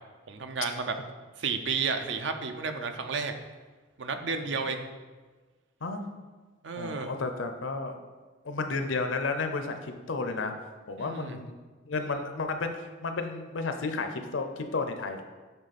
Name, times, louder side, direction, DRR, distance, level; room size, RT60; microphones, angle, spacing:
voice 1, 0.3-0.9 1.4-3.3 4.0-4.9 6.6-7.1 11.0-11.4, right 5 dB, 65° right, 7 dB, 0.6 m, -32 dB
voice 2, 6.8-8.0 8.4-10.5 10.9-11.5 11.9-12.7 13.0-15.2, left 3 dB, 75° left, 7 dB, 0.6 m, -32 dB
7.9 x 3.6 x 4.1 m, 1.3 s
head